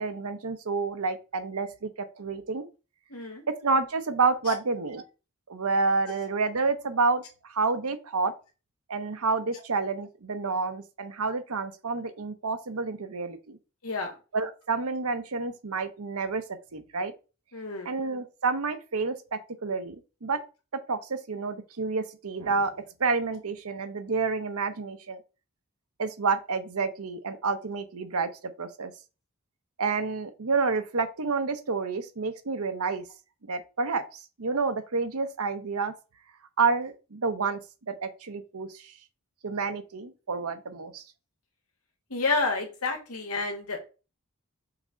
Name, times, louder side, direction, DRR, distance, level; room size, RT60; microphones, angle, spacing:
voice 1, 0.0-2.7 3.5-5.0 5.5-8.3 8.9-13.6 14.3-17.1 17.8-20.0 20.2-20.4 20.9-25.2 26.0-28.9 29.8-33.0 33.4-35.9 36.6-37.6 37.9-38.9 39.4-41.0, right 4 dB, 75° right, 0.9 m, -29 dB
voice 2, 3.1-3.4 4.5-4.6 6.1-6.3 13.8-14.2 17.5-17.9 42.1-43.8, left 3 dB, 90° left, 1.8 m, -30 dB
5.9 x 4.2 x 3.8 m
head